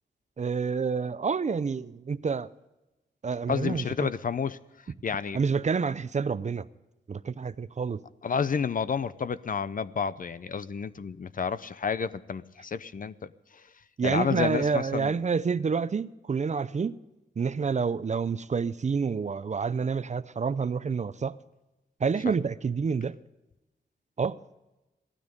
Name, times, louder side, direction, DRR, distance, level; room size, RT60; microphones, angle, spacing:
voice 1, 0.4-2.5 3.2-3.8 5.3-6.7 7.1-8.0 14.0-16.9 17.4-21.4 22.0-23.2 24.2-24.4, right 5 dB, 40° right, 0.6 m, -28 dB
voice 2, 3.5-4.6 5.0-5.4 8.2-13.1 14.0-15.2, left 6 dB, 45° left, 0.6 m, -30 dB
16.5 x 12.5 x 5.1 m
wide cardioid pair, 100°, 19 cm